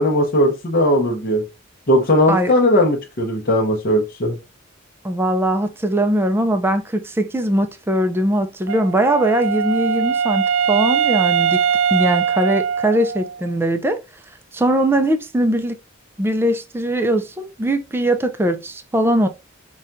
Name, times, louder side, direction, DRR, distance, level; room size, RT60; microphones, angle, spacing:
voice 1, 0.0-1.4 1.9-4.4, left 1 dB, 45° left, 0.7 m, -18 dB
voice 2, 5.0-11.6 11.9-14.0 14.5-15.8 16.2-19.3, right 1 dB, 10° right, 0.3 m, -20 dB
Wind instrument woodwind instrument, 8.7-13.5, right 7 dB, 85° right, 0.3 m, -21 dB
5.5 x 2.3 x 2.5 m
head